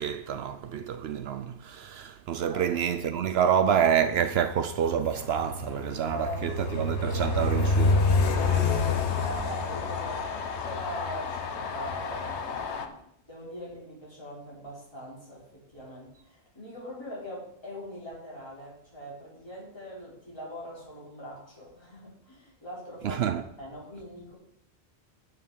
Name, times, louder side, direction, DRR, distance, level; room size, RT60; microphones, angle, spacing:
voice 1, 0.0-8.0 23.0-23.4, right 8 dB, 70° right, 0.8 m, -27 dB
Train, 4.4-12.9, left 3 dB, 80° left, 1.2 m, -28 dB
voice 2, 6.1-6.9 7.2-7.6 8.3-13.0 13.3-23.2 23.6-24.3, equal, 25° left, 4.2 m, -42 dB
9.4 x 6.9 x 5.5 m
omnidirectional pair, 1.1 m